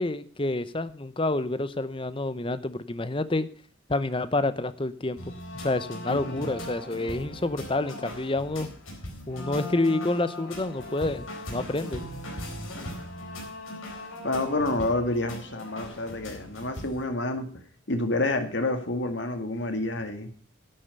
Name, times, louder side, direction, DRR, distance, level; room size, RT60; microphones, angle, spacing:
voice 1, 0.0-3.5 3.9-5.2 5.5-8.7 9.3-12.0, left 2 dB, 25° left, 14 dB, 0.7 m, -28 dB
sound 1, 5.2-17.0, left 1 dB, 90° left, 4.3 m, -39 dB
voice 2, 6.1-6.6 12.7-13.0 14.2-17.5 17.9-20.3, left 2 dB, 60° left, 7 dB, 1.9 m, -29 dB
11.0 x 8.7 x 6.8 m, 0.43 s
head